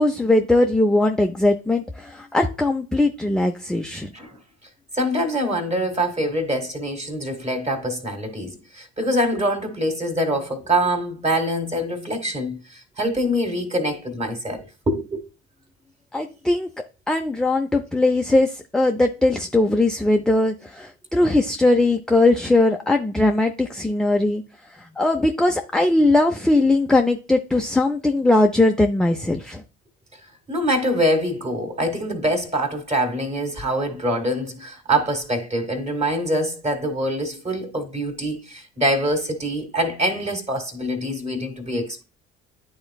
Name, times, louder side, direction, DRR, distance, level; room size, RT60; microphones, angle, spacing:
voice 1, 0.0-4.1 16.1-16.7 17.1-24.4 25.0-29.6, left 2 dB, ahead, 0.5 m, -20 dB
voice 2, 4.9-15.2 30.5-42.0, equal, 20° right, 1.8 m, -24 dB
11.5 x 3.8 x 2.3 m
figure-of-eight pair, 55°, 33 cm